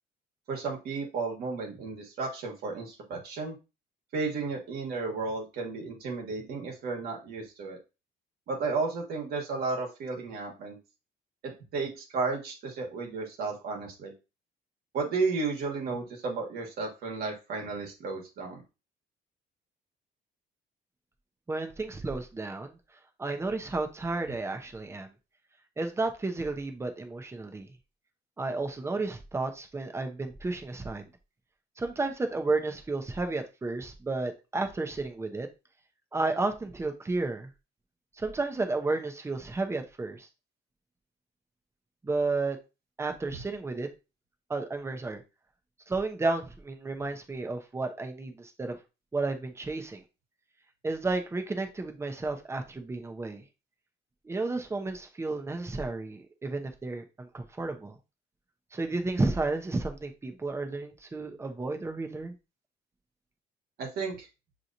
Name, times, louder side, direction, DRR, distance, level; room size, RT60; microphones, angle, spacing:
voice 1, 0.5-3.6 4.1-7.8 8.5-10.8 11.4-14.1 14.9-18.6 43.3-43.4 63.8-64.3, right 4 dB, 65° right, 0 dB, 1.4 m, -33 dB
voice 2, 21.5-22.8 23.2-25.1 25.8-27.7 28.4-31.1 31.8-35.5 36.1-37.5 38.2-40.3 42.0-42.6 43.0-43.9 44.5-45.2 45.9-48.8 49.1-50.0 50.8-53.4 54.2-58.0 58.7-62.3, right 3 dB, 15° right, 5 dB, 0.8 m, -32 dB
6.1 x 3.0 x 2.6 m, 0.29 s
cardioid pair, 110°, 17 cm